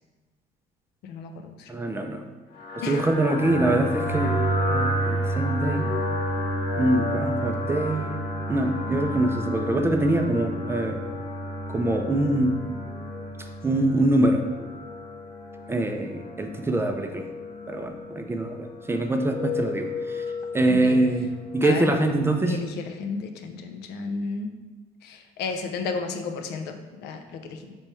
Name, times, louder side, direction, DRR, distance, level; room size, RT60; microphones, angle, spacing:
voice 1, 1.7-2.3 2.9-5.9 6.8-8.2 8.5-11.0 11.7-12.6 13.6-14.4 15.7-17.3 17.7-20.2 20.5-22.6, right 2 dB, 15° right, 5 dB, 0.3 m, -24 dB
sound 1, 2.5-22.2, equal, 65° left, 1.1 m, -31 dB
voice 2, 20.7-21.0 21.6-21.9 22.5-24.5 25.0-27.8, left 4 dB, 80° left, 6 dB, 0.5 m, -33 dB
3.4 x 3.0 x 4.3 m, 1.3 s
cardioid pair, 110°, 17 cm